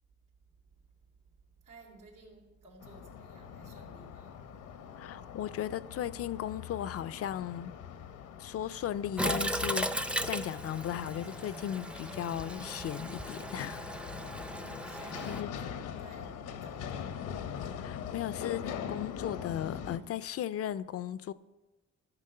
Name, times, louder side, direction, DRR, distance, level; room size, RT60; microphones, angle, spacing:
voice 1, 1.3-4.6 4.9-5.2 14.8-17.8, right 2 dB, 90° right, 3.2 m, -56 dB
sound 1, 2.8-20.0, left 8 dB, 85° left, 0.8 m, -42 dB
voice 2, 5.0-7.7 8.4-13.9 14.8-15.5 17.8-21.3, left 10 dB, 50° left, 0.4 m, -36 dB
Toilet flush, 9.2-15.4, right 1 dB, 5° right, 0.5 m, -36 dB
13.5 x 6.1 x 5.4 m
cardioid pair, 90°, 30 cm